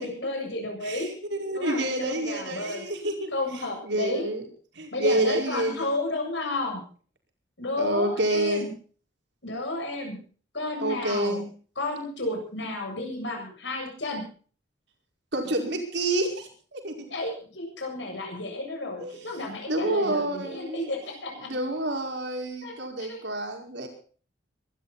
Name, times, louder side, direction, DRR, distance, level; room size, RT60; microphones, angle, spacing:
voice 1, 0.0-1.1 1.5-1.8 2.1-2.8 3.3-4.2 4.9-6.8 7.6-8.7 9.4-10.2 10.5-11.4 11.8-14.2 17.1-21.5 22.6-23.2, left 2 dB, 75° left, 3 dB, 7.7 m, -32 dB
voice 2, 0.8-3.3 3.8-4.4 4.8-5.9 7.8-8.7 10.8-11.5 15.3-17.1 19.0-19.2 19.7-20.9 21.4-23.9, right 1 dB, 70° right, 3 dB, 5.2 m, -28 dB
23.5 x 13.0 x 4.2 m, 0.42 s
head